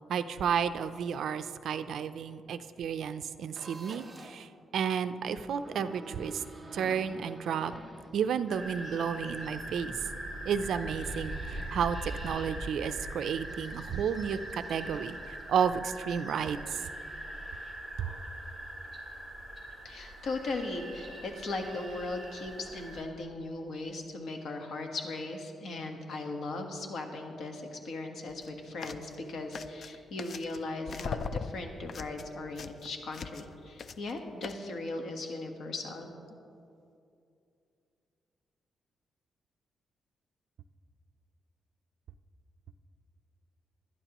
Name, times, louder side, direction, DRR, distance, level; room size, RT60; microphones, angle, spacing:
voice 1, 0.1-6.4 6.7-7.7 8.1-9.9 10.4-16.8 18.0-18.1, right 7 dB, 70° right, 11 dB, 0.5 m, -32 dB
sound 1, 3.5-4.5 5.5-8.6, right 2 dB, 15° right, 1.0 m, -48 dB
sound 2, 8.5-23.0, right 1 dB, 5° left, 2.2 m, -41 dB
voice 2, 19.8-36.1, left 2 dB, 60° left, 3 dB, 1.4 m, -38 dB
sound 3, 28.3-28.5 28.8-29.1 29.5-30.6 30.9-33.5 33.8-34.1 34.4-34.5, left 5 dB, 45° left, 0.4 m, -39 dB
20.0 x 11.5 x 3.0 m, 2.6 s
wide cardioid pair, 150°, 0 cm